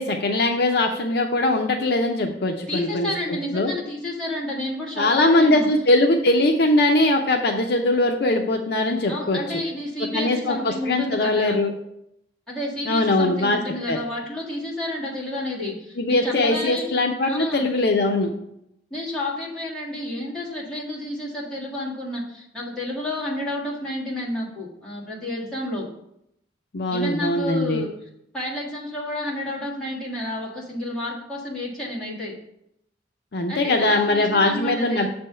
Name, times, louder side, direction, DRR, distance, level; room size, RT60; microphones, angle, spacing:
voice 1, 0.0-3.7 5.0-9.4 10.1-11.7 12.9-13.6 13.9-14.0 16.0-18.3 26.7-27.8 33.3-35.1, left 2 dB, 55° left, 3 dB, 0.6 m, -21 dB
voice 2, 2.7-5.7 9.1-11.6 12.5-16.9 17.2-17.7 18.9-25.9 26.9-27.9 28.3-32.3 33.5-35.1, left 1 dB, 5° left, -7 dB, 1.7 m, -30 dB
6.8 x 3.5 x 5.4 m, 0.78 s
head